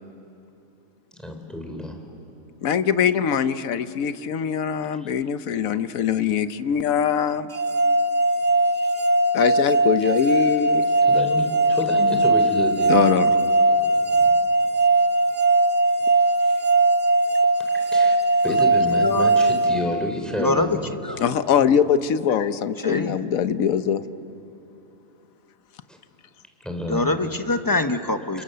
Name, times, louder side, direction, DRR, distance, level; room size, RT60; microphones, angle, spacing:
voice 1, 1.1-2.0 5.0-5.1 8.7-8.9 11.1-13.1 14.2-14.3 17.7-18.2 18.4-20.9 25.9-26.0 26.6-27.1 28.3-28.4, left 1 dB, ahead, 3 dB, 3.6 m, -30 dB
voice 2, 2.6-7.5 9.3-10.9 12.9-13.3 21.2-24.0, left 8 dB, 75° left, 12 dB, 1.2 m, -22 dB
sound 1, 7.5-20.5, right 2 dB, 35° right, 0.8 m, -20 dB
voice 3, 19.0-19.4 20.4-20.8 21.0-21.2 22.8-23.1 26.9-28.4, left 2 dB, 15° left, 7 dB, 0.8 m, -24 dB
30.0 x 28.0 x 6.8 m, 2.9 s
omnidirectional pair, 1.5 m